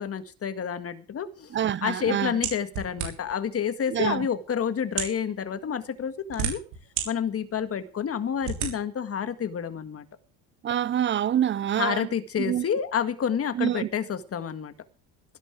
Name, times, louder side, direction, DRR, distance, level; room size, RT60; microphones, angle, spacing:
voice 1, 0.0-6.6 7.1-10.1 11.8-14.7, left 8 dB, 35° left, 1.8 m, -29 dB
voice 2, 1.5-2.3 3.9-4.3 10.6-12.1 12.4-12.6 13.6-13.9, right 10 dB, 30° right, 0.6 m, -26 dB
sound 1, 2.4-3.4 4.2-4.3 4.9-5.2 6.0-7.1 7.6-7.7 8.4-8.7, right 9 dB, 85° right, 6.2 m, -30 dB
17.5 x 11.0 x 4.9 m
cardioid pair, 110°, 41 cm